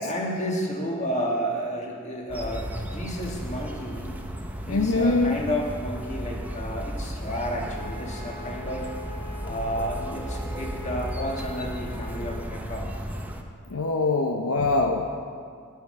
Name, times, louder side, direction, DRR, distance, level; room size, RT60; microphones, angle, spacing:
voice 1, 0.0-4.1 4.7-8.9 9.4-12.9, equal, 35° left, 0 dB, 1.5 m, -31 dB
sound 1, 2.3-13.4, equal, 10° right, 0.7 m, -35 dB
voice 2, 4.7-5.3 13.7-15.1, left 3 dB, 75° left, 4 dB, 0.6 m, -23 dB
Wind instrument woodwind instrument, 7.6-12.4, left 2 dB, 50° left, 2.1 m, -42 dB
10.5 x 8.1 x 5.3 m, 2.2 s
head